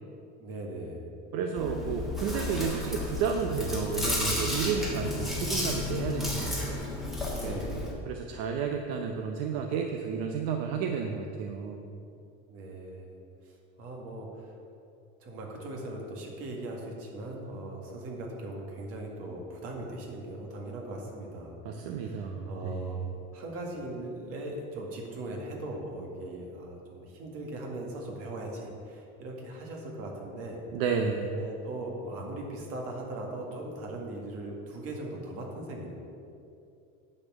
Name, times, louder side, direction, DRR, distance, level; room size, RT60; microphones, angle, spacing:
voice 1, 0.4-1.1 7.3-7.9 12.5-13.2 13.4-14.6 15.2-23.0 23.3-30.6 31.3-36.0, right 1 dB, 50° right, 0 dB, 1.9 m, -39 dB
voice 2, 1.3-6.8 7.4-7.6 8.1-11.8 21.6-23.1 30.7-31.4, right 6 dB, 70° right, 3 dB, 0.8 m, -32 dB
Chewing mastication, 1.6-7.9, left 2 dB, ahead, 1.5 m, -32 dB
9.8 x 4.5 x 7.2 m, 2.6 s
cardioid pair, 155°, 29 cm